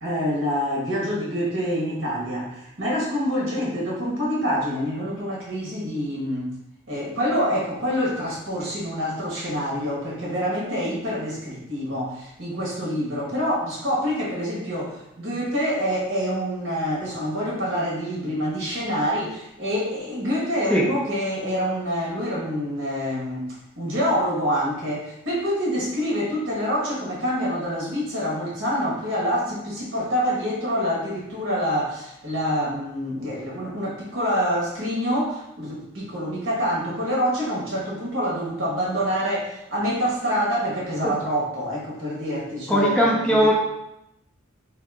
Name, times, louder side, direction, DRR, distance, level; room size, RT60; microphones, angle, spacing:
voice 1, 0.0-6.5 6.9-23.5 23.8-43.5, equal, 70° right, -5 dB, 1.2 m, -26 dB
voice 2, 42.7-43.5, equal, 5° left, -4 dB, 0.4 m, -19 dB
2.8 x 2.8 x 3.4 m, 0.84 s
head